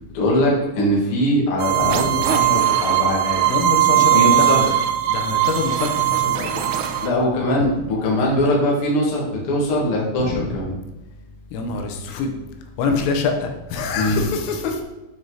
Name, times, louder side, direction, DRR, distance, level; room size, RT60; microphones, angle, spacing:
voice 1, 0.1-3.4 4.1-4.7 7.0-10.7 13.9-14.2, left 1 dB, 60° left, -4 dB, 1.4 m, -21 dB
sound 1, 1.6-7.1, right 13 dB, 85° right, 2.8 m, -19 dB
voice 2, 1.9-2.3 3.5-4.8 5.1-6.6 7.6-7.7 10.2-10.6 11.5-12.3 12.8-14.8, left 4 dB, 80° left, 4 dB, 3.4 m, -25 dB
8.7 x 5.5 x 3.9 m, 1.0 s
omnidirectional pair, 5.9 m